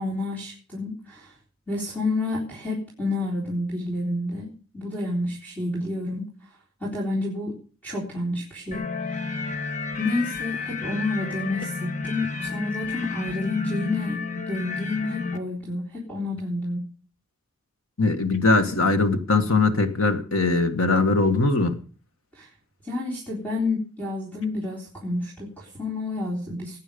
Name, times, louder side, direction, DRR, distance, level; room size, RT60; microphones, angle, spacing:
voice 1, 0.0-1.3 1.7-6.3 6.8-7.6 7.8-9.3 10.0-16.9 22.3-22.5 22.8-26.8, left 2 dB, 5° left, -4 dB, 3.9 m, -29 dB
sound 1, 8.7-15.4, left 4 dB, 35° left, 1.6 m, -31 dB
voice 2, 18.0-21.8, left 3 dB, 75° left, 8 dB, 1.7 m, -21 dB
19.5 x 9.0 x 5.3 m, 0.41 s
head